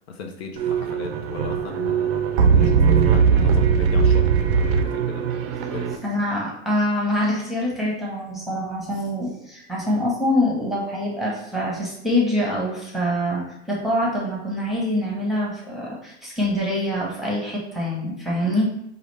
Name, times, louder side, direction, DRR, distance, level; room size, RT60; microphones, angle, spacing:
voice 1, 0.1-5.3 5.7-6.0, left 5 dB, 55° left, 3 dB, 0.6 m, -37 dB
sound 1, 0.6-6.0, right 6 dB, 45° right, 0.5 m, -19 dB
voice 2, 6.0-18.7, left 1 dB, ahead, -5 dB, 0.9 m, -25 dB
4.9 x 2.4 x 3.2 m, 0.82 s
hypercardioid pair, 125°, 38 cm